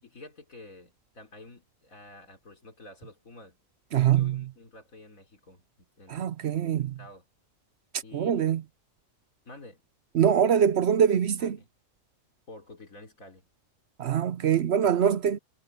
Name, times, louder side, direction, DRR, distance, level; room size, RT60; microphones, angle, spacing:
voice 1, 0.0-3.6 4.0-6.3 6.8-7.2 8.0-8.5 9.4-9.8 11.4-11.5 12.5-13.5, left 2 dB, 85° left, 4.1 m, -49 dB
voice 2, 3.9-4.5 6.1-7.0 7.9-8.6 10.1-11.6 14.0-15.4, right 8 dB, 60° right, 0.8 m, -24 dB
omnidirectional pair, 1.4 m